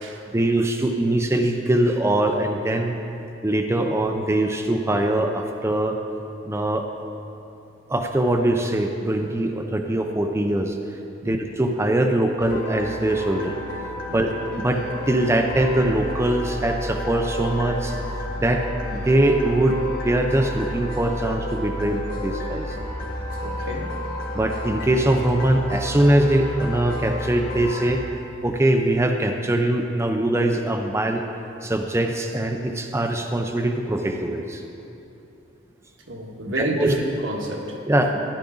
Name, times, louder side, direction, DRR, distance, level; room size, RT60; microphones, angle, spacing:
voice 1, 0.3-3.0 3.4-6.0 6.5-6.9 7.9-10.8 11.2-13.6 14.1-14.3 14.6-18.0 18.4-18.6 18.9-22.8 24.3-28.0 28.4-31.2 31.6-34.6 36.5-36.9 37.9-38.3, right 1 dB, 15° right, 3 dB, 0.5 m, -22 dB
sound 1, 12.4-27.9, left 1 dB, 50° left, 1.8 m, -31 dB
voice 2, 23.4-24.0 36.1-37.8, right 1 dB, 75° right, 0 dB, 1.6 m, -29 dB
14.0 x 11.0 x 3.9 m, 2.8 s
head